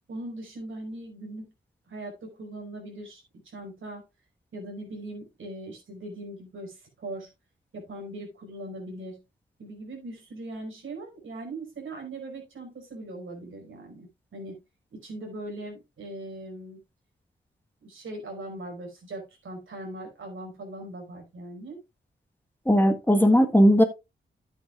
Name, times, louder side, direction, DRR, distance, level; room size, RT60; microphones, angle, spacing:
voice 1, 0.1-1.5 1.9-4.0 4.5-7.3 7.7-9.2 9.6-14.6 14.9-16.8 17.8-21.8, right 1 dB, 85° right, 0 dB, 4.9 m, -40 dB
voice 2, 22.7-23.8, equal, 10° left, 7 dB, 1.4 m, -18 dB
11.5 x 8.8 x 2.4 m, 0.24 s
cardioid pair, 75°, 20 cm